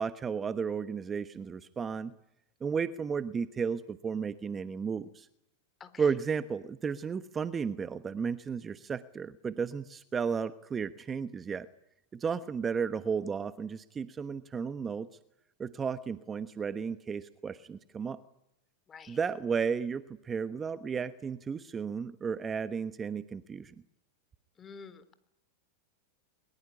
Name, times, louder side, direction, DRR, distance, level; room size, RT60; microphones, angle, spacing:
voice 1, 0.0-2.1 2.6-5.3 6.0-11.7 12.1-15.1 15.6-18.2 19.1-23.7, right 6 dB, 20° right, 12 dB, 1.1 m, -33 dB
voice 2, 24.6-25.1, left 5 dB, 25° left, 13 dB, 3.5 m, -48 dB
23.0 x 22.5 x 9.8 m, 0.80 s
hypercardioid pair, 110°, 0 cm